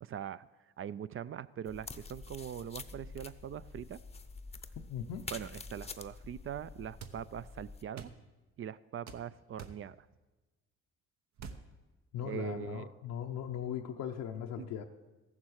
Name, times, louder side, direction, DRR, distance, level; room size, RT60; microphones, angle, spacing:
voice 1, 0.0-0.5 0.8-4.0 5.3-8.1 8.6-10.1 12.2-12.9 14.6-14.8, right 9 dB, 45° right, 16 dB, 0.4 m, -42 dB
sound 1, 1.7-7.8, left 4 dB, 20° left, 0.7 m, -47 dB
voice 2, 4.9-5.3 12.1-14.8, left 9 dB, 90° left, 1 dB, 0.7 m, -39 dB
sound 2, 7.0-7.2 8.0-8.2 9.1-9.2 9.6-9.8 11.4-11.6, right 6 dB, 65° right, 1.0 m, -45 dB
14.0 x 7.3 x 6.4 m, 1.2 s
cardioid pair, 90°, 30 cm